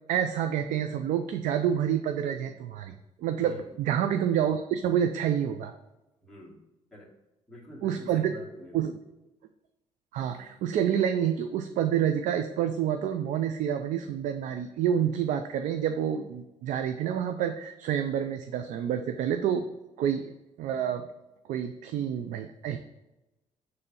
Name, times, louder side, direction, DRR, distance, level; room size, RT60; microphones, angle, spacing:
voice 1, 0.1-5.7 7.8-8.4 8.7-8.9 10.1-19.7 20.0-21.1 21.5-22.8, right 9 dB, 80° right, 7 dB, 0.5 m, -28 dB
voice 2, 3.4-3.8 6.2-6.6 6.9-7.1 7.5-8.9, equal, 5° left, -5 dB, 2.1 m, -46 dB
6.8 x 3.3 x 5.4 m, 0.99 s
cardioid pair, 115°, 13 cm